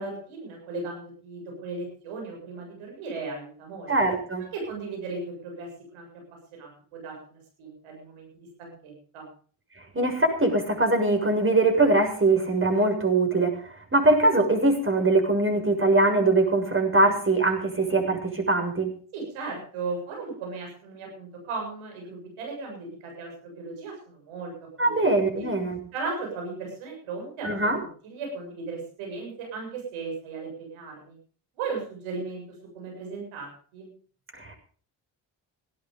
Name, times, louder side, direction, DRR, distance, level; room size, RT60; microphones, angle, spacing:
voice 1, 0.0-3.9 4.5-6.1 6.5-9.2 19.1-24.5 24.8-25.1 25.4-25.5 25.9-31.2 31.6-32.4 32.7-33.9, right 3 dB, 85° right, 1 dB, 7.5 m, -36 dB
voice 2, 3.9-4.4 9.9-13.6 13.9-18.9 24.8-25.8 27.4-27.8 34.3-34.6, right 2 dB, 25° right, 6 dB, 6.8 m, -22 dB
17.0 x 12.5 x 5.3 m, 0.43 s
supercardioid pair, 55°, 47 cm